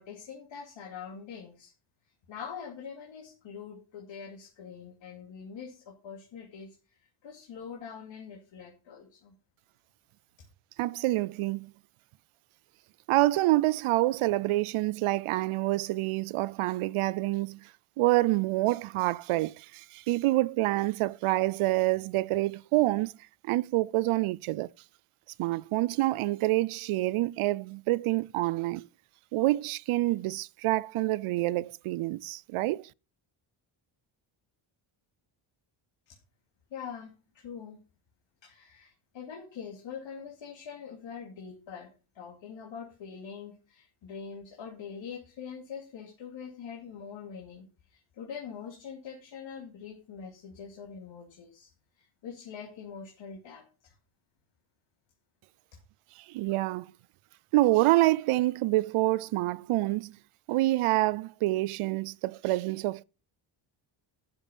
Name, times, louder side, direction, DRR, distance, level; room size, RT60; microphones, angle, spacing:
voice 1, 0.0-1.7 2.3-9.3 10.4-10.5 36.1-36.2 36.7-37.8 38.4-41.9 42.1-53.9, left 6 dB, 65° left, 2.6 m, -44 dB
voice 2, 10.8-11.7 13.1-17.6 18.0-23.1 23.5-24.7 25.4-28.9 29.3-32.9 56.3-56.9 57.5-60.2 60.5-63.0, right 18 dB, 85° right, 0.6 m, -27 dB
11.0 x 7.1 x 5.4 m
cardioid pair, 170°, 49 cm